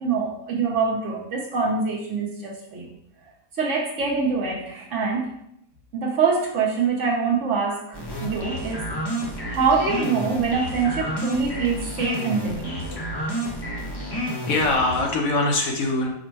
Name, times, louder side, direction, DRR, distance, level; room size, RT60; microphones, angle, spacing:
voice 1, 0.0-2.9 3.6-5.3 5.9-8.9 9.5-12.8, right 5 dB, 60° right, -1 dB, 1.0 m, -24 dB
sound 1, 7.9-15.0, equal, 35° left, 0.4 m, -30 dB
voice 2, 14.0-16.1, left 2 dB, 70° left, 1 dB, 1.2 m, -24 dB
5.0 x 2.1 x 4.4 m, 0.75 s
omnidirectional pair, 1.6 m